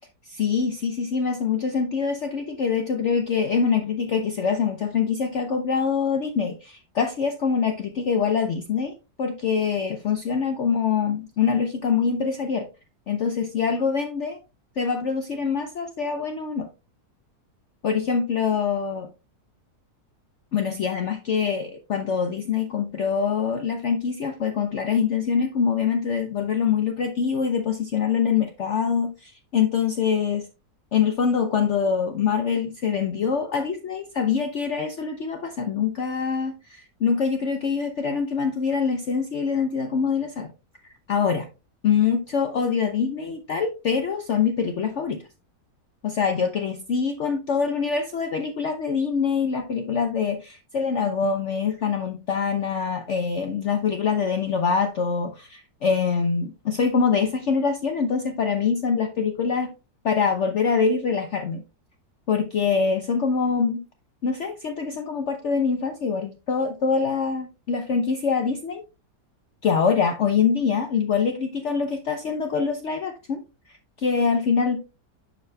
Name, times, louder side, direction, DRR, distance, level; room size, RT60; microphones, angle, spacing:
voice 1, 0.2-12.7 13.1-14.4 14.8-16.7 17.8-19.1 20.5-30.5 30.9-40.5 41.1-41.5 41.8-45.2 46.0-59.7 60.0-61.6 62.3-63.8 64.2-68.8 69.6-73.4 73.7-74.9, left 6 dB, 60° left, 6 dB, 0.8 m, -24 dB
11.0 x 5.1 x 2.2 m, 0.30 s
omnidirectional pair, 1.8 m